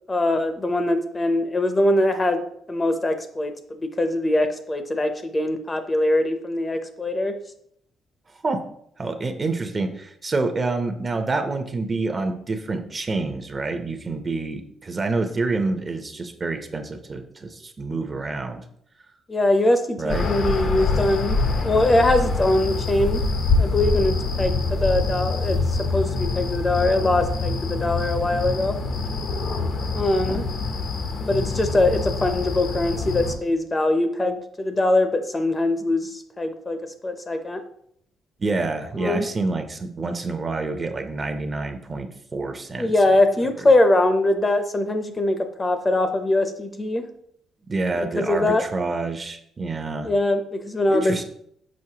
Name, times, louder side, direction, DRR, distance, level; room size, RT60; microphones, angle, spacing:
voice 1, 0.1-2.4 2.7-7.4 19.3-23.2 23.6-28.8 29.9-30.4 31.2-36.8 37.0-37.6 39.0-39.3 42.7-47.1 48.2-48.6 50.0-51.2, left 1 dB, 25° left, 8 dB, 0.7 m, -22 dB
voice 2, 9.0-18.6 20.0-20.3 30.3-30.4 38.4-42.9 47.7-50.1 50.9-51.2, right 3 dB, 30° right, 7 dB, 0.7 m, -27 dB
sound 1, 20.1-33.4, left 3 dB, 65° left, 0.8 m, -25 dB
6.3 x 5.1 x 2.9 m, 0.70 s
cardioid pair, 90°, 0 cm